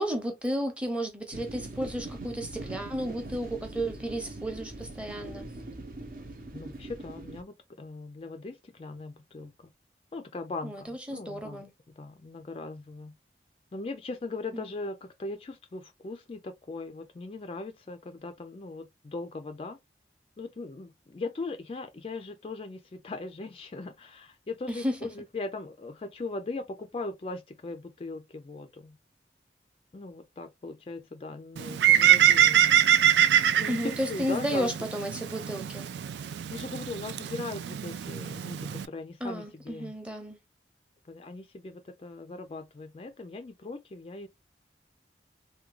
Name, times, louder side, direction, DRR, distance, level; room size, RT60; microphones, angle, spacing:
voice 1, 0.0-5.4 10.6-11.7 14.5-14.6 24.7-25.0 33.7-35.9 39.2-40.4, equal, 5° right, 0.7 m, -33 dB
sound 1, 1.3-7.4, right 2 dB, 55° right, 0.8 m, -42 dB
voice 2, 6.5-9.7 10.1-11.6 12.0-13.1 13.7-19.8 20.4-29.0 29.9-32.7 33.5-34.9 36.5-39.9 41.1-44.3, left 3 dB, 30° left, 0.3 m, -39 dB
Bird, 31.6-38.9, right 10 dB, 80° right, 0.3 m, -24 dB
3.5 x 2.2 x 3.1 m
head